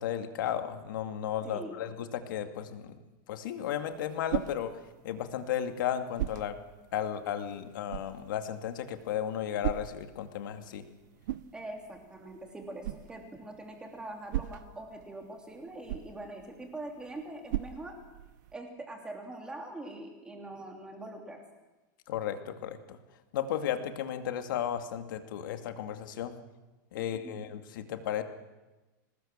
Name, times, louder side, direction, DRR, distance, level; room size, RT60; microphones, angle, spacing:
voice 1, 0.0-3.0 3.3-4.7 5.0-6.6 6.9-10.8 22.1-23.0 23.3-26.3 26.9-28.2, left 10 dB, 70° left, 7 dB, 2.4 m, -34 dB
voice 2, 1.4-1.8 11.5-17.9 18.5-21.4 26.9-27.4, right 2 dB, 5° right, 2 dB, 3.1 m, -43 dB
sound 1, 3.6-18.5, right 14 dB, 60° right, 0.8 m, -41 dB
23.5 x 19.5 x 7.5 m, 1.1 s
supercardioid pair, 165°, 11 cm